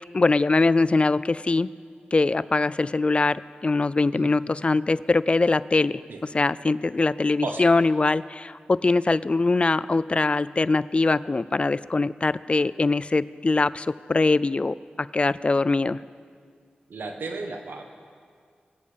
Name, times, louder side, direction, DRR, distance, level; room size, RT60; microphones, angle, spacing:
voice 1, 0.1-1.7 2.1-6.0 6.3-16.0, left 3 dB, 35° left, 18 dB, 0.3 m, -22 dB
voice 2, 16.9-17.8, right 3 dB, 85° right, 4 dB, 1.4 m, -34 dB
23.0 x 8.4 x 5.2 m, 2.1 s
wide cardioid pair, 75°, 3 cm